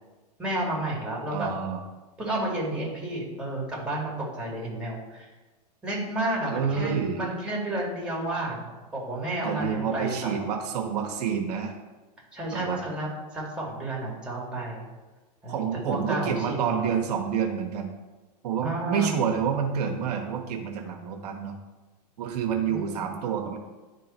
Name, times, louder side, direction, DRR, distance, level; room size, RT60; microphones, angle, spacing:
voice 1, 0.4-1.5 2.2-5.3 5.8-10.4 12.3-14.8 15.4-16.9 18.6-19.1 22.6-23.0, right 1 dB, 5° right, -4 dB, 2.3 m, -31 dB
voice 2, 1.3-1.8 6.5-7.3 9.4-11.7 12.5-13.0 15.5-17.9 18.4-21.6 22.2-23.6, right 7 dB, 70° right, 3 dB, 1.1 m, -28 dB
10.5 x 3.8 x 4.4 m, 1.2 s
supercardioid pair, 130°, 21 cm